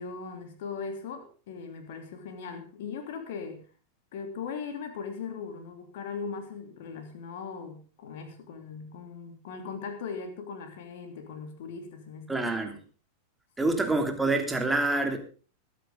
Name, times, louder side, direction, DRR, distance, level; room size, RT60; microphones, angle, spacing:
voice 1, 0.0-3.6 4.1-12.4 13.6-13.8, left 5 dB, 55° left, 7 dB, 3.0 m, -39 dB
voice 2, 12.3-12.7 13.6-15.2, right 2 dB, 10° right, 4 dB, 2.9 m, -26 dB
21.5 x 9.3 x 3.8 m, 0.36 s
figure-of-eight pair, 90°, 0 cm